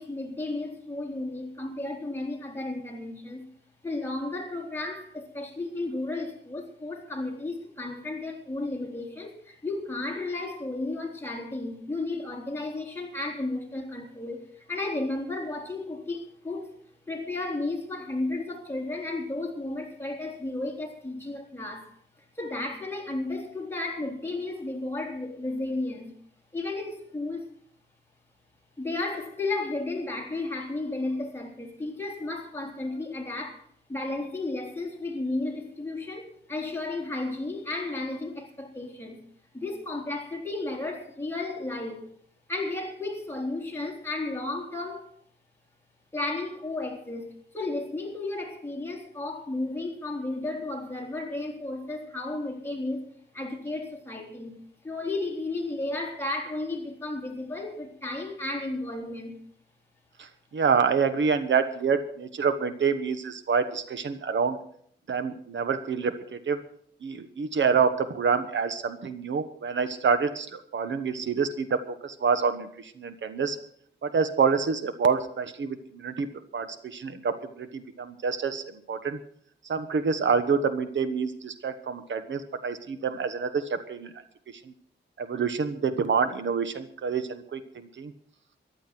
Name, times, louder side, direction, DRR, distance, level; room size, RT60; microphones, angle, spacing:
voice 1, 0.0-3.5 3.8-16.8 17.1-21.9 22.4-26.1 26.5-27.4 28.8-33.6 33.9-39.2 39.5-42.1 42.5-45.1 46.1-53.1 53.3-54.6 54.8-59.4, left 2 dB, 10° left, 3.7 m, -33 dB
voice 2, 60.2-64.6 65.1-66.6 67.0-73.6 74.0-76.3 76.5-79.2 79.6-84.1 84.6-84.7 85.2-88.1, right 5 dB, 75° right, 1.3 m, -27 dB
14.5 x 11.5 x 6.1 m
wide cardioid pair, 115°, 19 cm